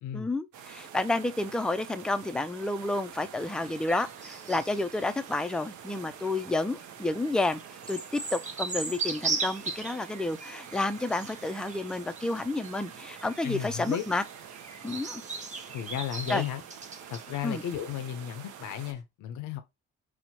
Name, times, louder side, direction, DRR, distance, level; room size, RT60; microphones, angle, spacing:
voice 1, 0.1-7.6 7.9-14.2 14.8-15.2 16.3-16.4 17.4-17.6, left 2 dB, 5° left, 0.3 m, -30 dB
sound 1, 0.5-18.9, right 8 dB, 75° right, 0.6 m, -47 dB
sound 2, 3.3-19.0, right 4 dB, 25° right, 0.6 m, -40 dB
voice 2, 13.4-14.0 15.7-16.6 17.1-19.6, left 10 dB, 85° left, 0.6 m, -34 dB
4.4 x 2.1 x 2.7 m
cardioid pair, 90°, 30 cm